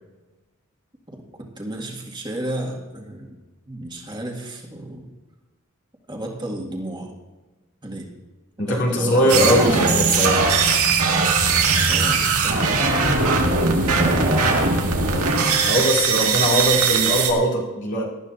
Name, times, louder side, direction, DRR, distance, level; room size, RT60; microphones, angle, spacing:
voice 1, 1.6-3.4 3.7-5.1 6.1-7.1 7.8-8.1 8.6-9.5 11.9-13.0, right 1 dB, 20° right, -1 dB, 2.0 m, -32 dB
voice 2, 8.6-10.5 14.0-14.1 15.6-18.1, equal, 55° left, -3 dB, 2.6 m, -21 dB
sound 1, 9.3-17.3, right 4 dB, 90° right, 2.0 m, -19 dB
19.0 x 12.5 x 2.7 m, 1.2 s
head